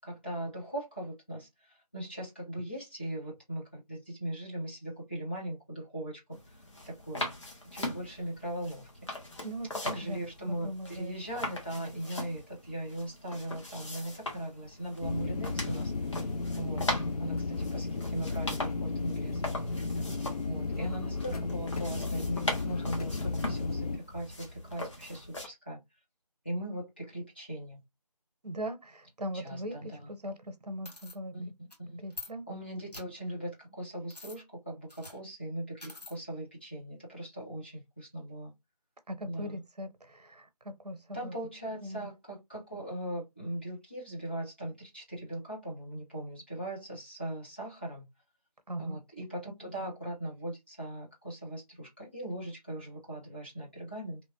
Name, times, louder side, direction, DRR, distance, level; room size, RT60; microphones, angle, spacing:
voice 1, 0.0-6.4 6.9-7.3 7.7-8.9 9.8-15.9 16.6-16.8 17.2-19.4 20.0-20.1 20.4-25.8 26.4-27.8 29.3-30.1 31.3-32.0 32.5-38.5 39.3-39.6 41.1-48.0 48.8-54.2, right 1 dB, 15° left, 0.6 m, -39 dB
sound 1, 6.3-25.5, left 2 dB, 45° left, 1.0 m, -40 dB
voice 2, 9.4-11.2 28.4-31.4 32.0-32.5 39.1-41.3 41.8-42.1 48.7-49.0, equal, 75° right, 0.8 m, -40 dB
sound 2, 15.0-24.0, left 3 dB, 65° left, 0.5 m, -34 dB
sound 3, 30.9-31.2 31.7-31.8 32.1-32.3 32.9-33.0 34.1-34.4 34.9-35.2 35.8-36.2, left 3 dB, 80° left, 1.8 m, -45 dB
2.9 x 2.1 x 2.6 m
figure-of-eight pair, 165°, 20 cm